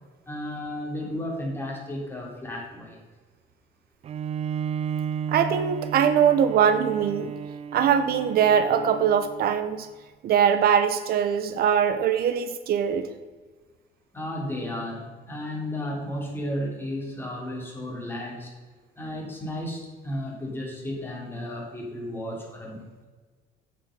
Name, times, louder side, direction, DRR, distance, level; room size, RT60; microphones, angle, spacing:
voice 1, 0.3-3.0 14.1-18.5 19.0-22.9, left 1 dB, 15° left, -2 dB, 3.5 m, -33 dB
Bowed string instrument, 4.0-9.7, right 7 dB, 40° right, 0.4 m, -33 dB
voice 2, 5.3-7.3 7.7-9.9 10.2-13.1, right 8 dB, 65° right, 11 dB, 0.8 m, -22 dB
8.9 x 7.8 x 5.3 m, 1.4 s
cardioid pair, 110°, 17 cm